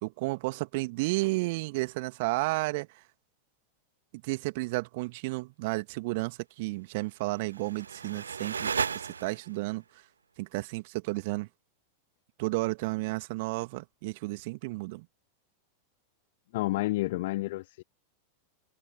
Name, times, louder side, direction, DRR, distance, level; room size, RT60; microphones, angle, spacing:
voice 1, 0.0-3.0 4.2-10.0 10.4-11.5 12.4-15.1, right 23 dB, 50° right, 2.4 m, -32 dB
sound 1, 7.3-9.7, right 6 dB, 70° right, 0.3 m, -34 dB
voice 2, 16.5-17.8, left 18 dB, 50° left, 0.8 m, -30 dB
open air
figure-of-eight pair, 90°, 0 cm